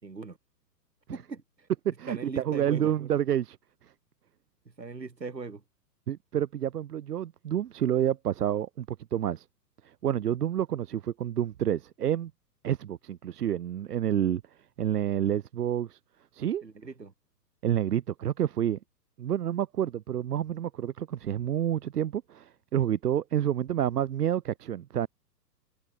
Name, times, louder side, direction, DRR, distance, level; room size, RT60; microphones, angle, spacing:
voice 1, 0.0-0.4 1.1-1.7 2.1-3.0 4.6-5.6 16.6-17.1, right 4 dB, 85° right, 4.6 m, -39 dB
voice 2, 2.0-3.6 6.1-8.9 9.1-9.4 9.8-12.3 12.6-14.4 14.8-16.0 16.3-16.6 17.6-18.8 19.2-25.1, right 10 dB, 70° right, 0.8 m, -29 dB
figure-of-eight pair, 115°, 49 cm